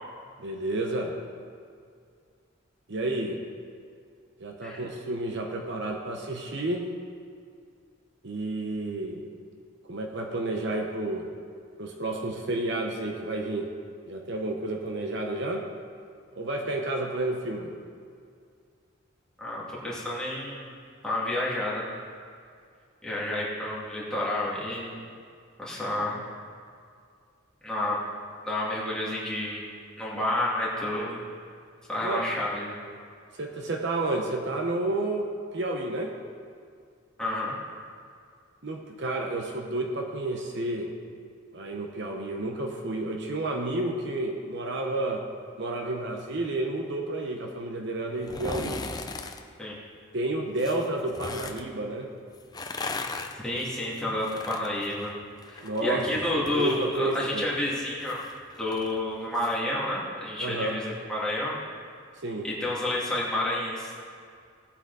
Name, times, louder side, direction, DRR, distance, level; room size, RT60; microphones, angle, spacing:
voice 1, 0.4-1.2 2.9-3.4 4.4-6.9 8.2-9.3 9.9-11.3 11.8-13.7 14.1-15.7 16.3-17.7 23.3-23.4 32.0-32.3 33.4-36.1 38.6-40.9 41.5-45.2 45.6-48.8 50.1-52.1 55.6-56.1 56.3-57.4 60.4-60.8 62.2-62.5, right 2 dB, 55° right, 2 dB, 1.0 m, -31 dB
voice 2, 19.4-20.7 21.0-21.9 23.0-25.1 25.6-26.2 27.6-28.0 28.4-29.6 30.0-31.2 31.9-32.7 37.2-37.5 49.6-49.8 53.3-55.1 55.5-58.2 58.6-61.5 62.4-64.0, left 1 dB, 5° left, -7 dB, 2.4 m, -30 dB
sound 1, 48.2-49.4 50.6-51.6 52.4-55.8 56.1-59.6 59.9-60.0, left 3 dB, 20° left, 0.5 m, -38 dB
17.5 x 8.3 x 4.1 m, 2.2 s
head